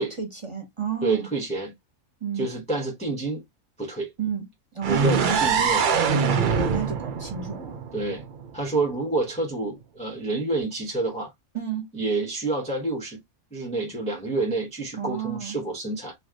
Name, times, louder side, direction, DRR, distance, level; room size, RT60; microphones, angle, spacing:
voice 1, 0.2-1.3 2.2-2.5 4.2-4.4 4.7-5.4 6.3-7.8 11.5-11.8 15.0-15.5, right 7 dB, 25° right, 1.2 m, -31 dB
voice 2, 1.0-1.7 2.3-3.4 3.8-4.1 4.8-6.2 7.9-8.2 8.5-11.3 11.9-13.2 13.5-16.1, right 2 dB, 5° left, 0.7 m, -28 dB
sound 1, 4.8-8.7, right 6 dB, 70° right, 0.4 m, -24 dB
3.3 x 2.6 x 3.5 m
omnidirectional pair, 1.5 m